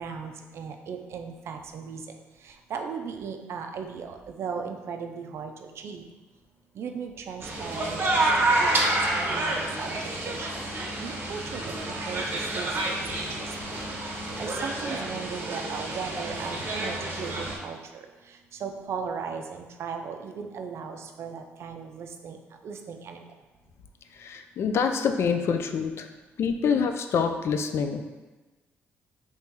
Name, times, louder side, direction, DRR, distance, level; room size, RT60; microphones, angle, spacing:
voice 1, 0.0-2.0 2.4-6.0 6.8-8.3 8.6-10.5 10.8-13.3 13.9-18.0 18.6-22.4 22.6-23.3, right 6 dB, 60° right, 5 dB, 0.4 m, -37 dB
sound 1, 7.4-17.6, right 2 dB, 45° right, 0.8 m, -28 dB
voice 2, 24.2-26.1 26.4-28.0, left 6 dB, 60° left, 6 dB, 0.3 m, -26 dB
3.0 x 2.8 x 3.6 m, 1.2 s
supercardioid pair, 75°, 5 cm